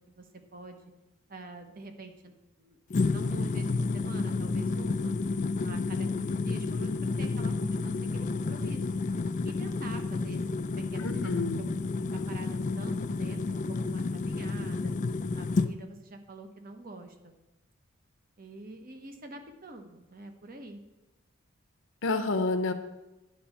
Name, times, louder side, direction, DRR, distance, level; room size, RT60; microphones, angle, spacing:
voice 1, 0.1-0.8 1.3-2.3 2.6-2.8 3.1-5.2 5.6-8.9 9.4-11.3 11.6-11.7 12.1-14.9 15.3-17.3 18.4-20.8, right 2 dB, 40° right, 6 dB, 1.0 m, -46 dB
sound 1, 2.9-15.7, left 3 dB, 35° left, 0.3 m, -30 dB
voice 2, 11.0-11.6 22.0-22.7, left 3 dB, 65° left, 8 dB, 0.7 m, -28 dB
10.0 x 4.5 x 7.1 m, 1.0 s
head